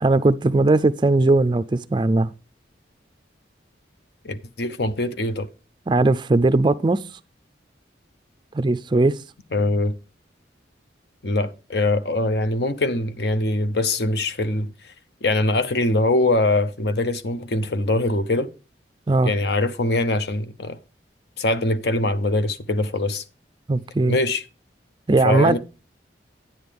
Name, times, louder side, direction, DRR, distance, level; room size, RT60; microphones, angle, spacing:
voice 1, 0.0-2.3 5.9-7.0 8.5-9.2 19.1-19.3 23.7-24.2 25.1-25.6, right 2 dB, 25° right, 0.4 m, -19 dB
voice 2, 4.2-5.5 9.5-9.9 11.2-14.7 15.2-18.5 19.2-20.8 21.4-23.2 24.1-24.4 25.2-25.6, left 2 dB, 60° left, 0.8 m, -22 dB
10.0 x 9.4 x 3.5 m
head